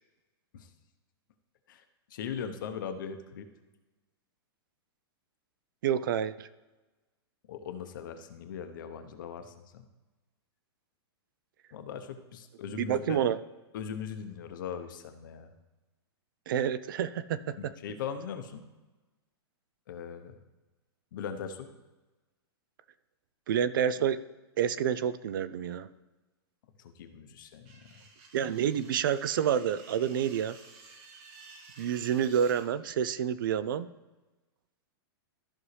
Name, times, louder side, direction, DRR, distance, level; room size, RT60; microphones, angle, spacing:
voice 1, 2.1-3.5 7.5-9.9 11.7-13.2 13.7-15.5 17.5-18.7 19.9-20.3 21.1-21.7 26.8-27.9, left 7 dB, 50° left, 8 dB, 0.9 m, -40 dB
voice 2, 5.8-6.5 12.8-13.4 16.5-17.6 23.5-24.2 24.6-25.9 28.3-30.6 31.8-33.9, right 8 dB, 55° right, 16 dB, 0.4 m, -28 dB
sound 1, 27.6-32.7, right 4 dB, 30° right, 1.0 m, -53 dB
14.0 x 5.5 x 3.3 m, 1.2 s
supercardioid pair, 170°, 13 cm